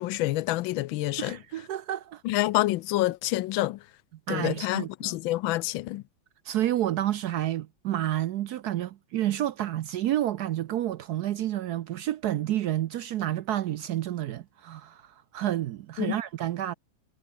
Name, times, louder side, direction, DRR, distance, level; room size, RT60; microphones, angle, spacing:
voice 1, 0.0-1.4 2.2-3.8 4.3-6.0 16.0-16.2, left 17 dB, 85° left, 1.4 m, -27 dB
voice 2, 1.2-2.2 4.3-5.1 6.4-16.7, right 12 dB, 70° right, 1.0 m, -30 dB
omnidirectional pair, 2.1 m